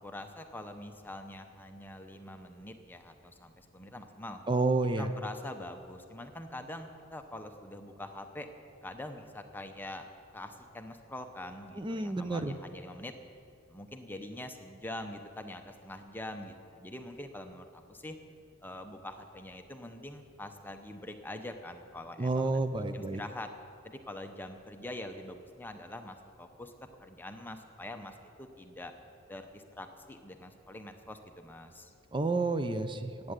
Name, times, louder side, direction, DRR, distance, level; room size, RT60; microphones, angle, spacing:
voice 1, 0.0-4.4 5.0-8.5 8.8-10.0 10.3-13.1 13.7-18.2 18.6-23.5 23.8-26.7 27.0-28.9 29.3-31.9, left 1 dB, 10° left, 6 dB, 0.8 m, -44 dB
voice 2, 4.5-5.1 11.8-12.6 22.2-23.2 32.1-33.3, right 3 dB, 25° right, 9 dB, 0.6 m, -30 dB
11.5 x 8.7 x 8.2 m, 2.4 s
head